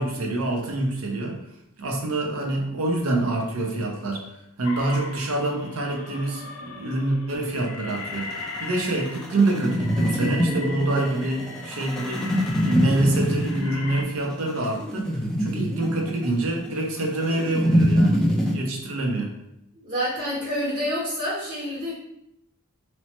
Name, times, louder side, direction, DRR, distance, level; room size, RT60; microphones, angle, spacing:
voice 1, 0.0-1.4 1.8-4.2 4.6-12.3 12.6-19.3, right 2 dB, 80° right, 1 dB, 0.6 m, -26 dB
sound 1, 4.6-14.0, left 3 dB, 70° left, 0.4 m, -39 dB
sound 2, 7.9-18.5, equal, 5° left, 0.3 m, -25 dB
voice 2, 19.7-21.9, equal, 45° right, -7 dB, 0.8 m, -28 dB
3.0 x 2.0 x 2.8 m, 0.82 s
head